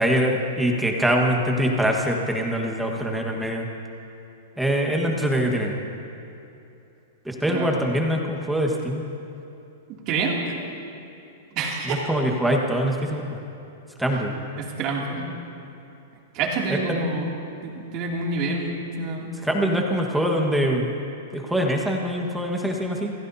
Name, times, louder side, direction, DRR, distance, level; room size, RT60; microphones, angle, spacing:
voice 1, 0.0-3.7 4.6-5.8 7.2-9.0 12.1-13.4 14.0-14.4 19.4-20.9 21.3-23.1, equal, 5° right, 0 dB, 1.5 m, -23 dB
voice 2, 10.1-10.4 11.6-12.1 14.6-15.3 16.3-17.3 17.6-19.3, right 3 dB, 35° right, -2 dB, 2.6 m, -27 dB
27.0 x 16.5 x 2.8 m, 2.8 s
supercardioid pair, 160°, 0 cm